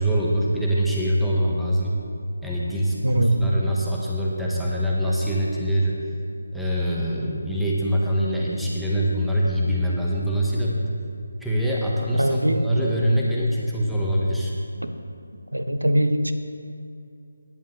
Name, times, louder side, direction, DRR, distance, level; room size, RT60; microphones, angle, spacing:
voice 1, 0.0-2.0 2.4-6.0 6.5-10.8 11.4-14.5, equal, ahead, -6 dB, 1.4 m, -24 dB
voice 2, 3.0-3.6 12.2-12.7 14.8-14.9 15.5-16.3, right 1 dB, 90° right, 8 dB, 0.9 m, -22 dB
17.5 x 11.0 x 3.3 m, 2.6 s
figure-of-eight pair, 155°, 0 cm